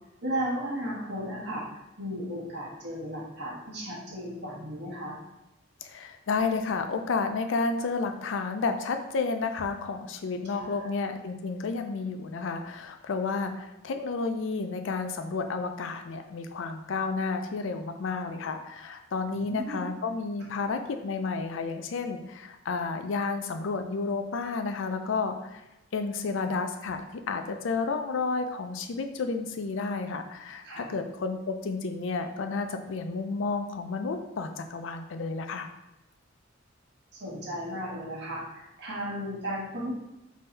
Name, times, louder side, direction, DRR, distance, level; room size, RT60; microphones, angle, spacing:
voice 1, 0.2-5.2 10.5-10.8 19.2-19.8 30.6-30.9 37.2-39.9, equal, 60° right, -5 dB, 1.3 m, -35 dB
voice 2, 5.8-25.6 25.9-35.7, left 4 dB, 75° left, 7 dB, 0.4 m, -31 dB
3.8 x 2.7 x 4.0 m, 0.93 s
head